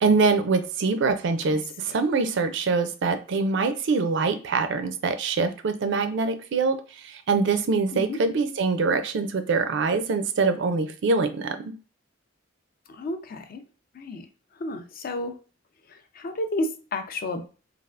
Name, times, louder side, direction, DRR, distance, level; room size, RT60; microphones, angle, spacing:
voice 1, 0.0-11.7, right 4 dB, 65° right, 0.4 m, -24 dB
voice 2, 13.0-13.6 14.0-14.3 14.6-15.3 16.2-17.5, left 2 dB, 50° left, 0.4 m, -31 dB
3.3 x 2.4 x 2.4 m
head